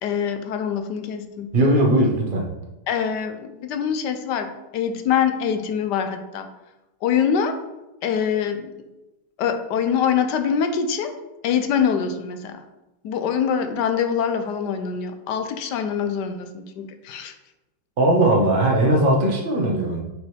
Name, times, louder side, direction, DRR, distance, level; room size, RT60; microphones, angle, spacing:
voice 1, 0.0-1.5 2.9-6.5 7.0-7.6 8.0-8.7 9.4-11.1 11.4-12.6 13.0-17.3, left 7 dB, 70° left, 7 dB, 1.2 m, -24 dB
voice 2, 1.5-2.6 18.0-20.0, right 1 dB, 30° right, -1 dB, 1.2 m, -19 dB
7.9 x 5.2 x 3.3 m, 0.99 s
omnidirectional pair, 2.0 m